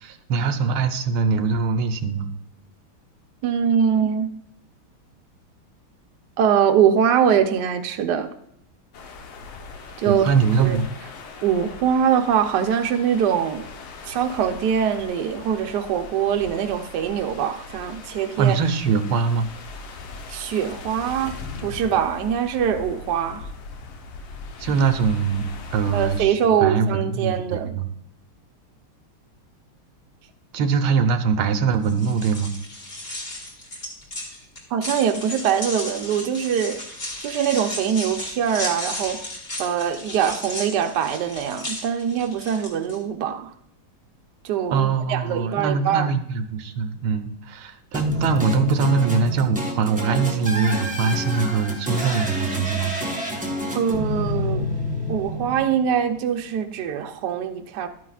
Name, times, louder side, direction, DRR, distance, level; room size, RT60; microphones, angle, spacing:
voice 1, 0.0-2.3 10.1-10.9 18.4-19.5 24.6-27.9 30.5-32.5 44.7-53.0, right 5 dB, 85° right, 1.6 m, -22 dB
voice 2, 3.4-4.4 6.4-8.3 10.0-10.3 10.6-10.8 11.4-13.7 14.1-18.5 20.3-23.5 25.9-27.8 34.7-36.8 37.2-39.2 39.6-43.5 44.4-46.1 53.7-54.7 55.1-57.9, right 8 dB, 65° right, 1.2 m, -23 dB
sound 1, 8.9-26.2, left 4 dB, 85° left, 1.9 m, -39 dB
sound 2, 31.8-43.0, left 1 dB, 30° left, 2.0 m, -34 dB
sound 3, 47.9-56.2, left 1 dB, 5° right, 0.7 m, -28 dB
12.0 x 9.5 x 2.4 m
omnidirectional pair, 2.3 m